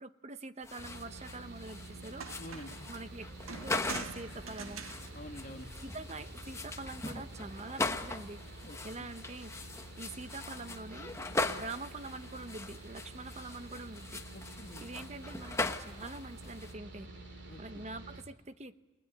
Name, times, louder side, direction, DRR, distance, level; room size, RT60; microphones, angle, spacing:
voice 1, 0.0-2.4 2.9-4.8 5.8-9.5 10.0-11.1 11.5-14.2 14.8-17.1 17.6-18.9, right 2 dB, 30° right, 12 dB, 0.9 m, -45 dB
sound 1, 0.6-16.7, left 2 dB, 15° left, 1.1 m, -40 dB
Mechanical fan, 0.8-18.2, right 2 dB, 55° right, 3.5 m, -49 dB
sound 2, 1.7-1.8 2.1-2.9 3.5-6.2 7.4-7.9, right 5 dB, 85° right, 1.6 m, -46 dB
voice 2, 2.4-2.8 5.1-5.7 8.7-9.1 14.3-14.9 17.5-17.8, left 1 dB, 40° left, 2 dB, 1.7 m, -48 dB
29.5 x 20.0 x 9.1 m, 1.3 s
head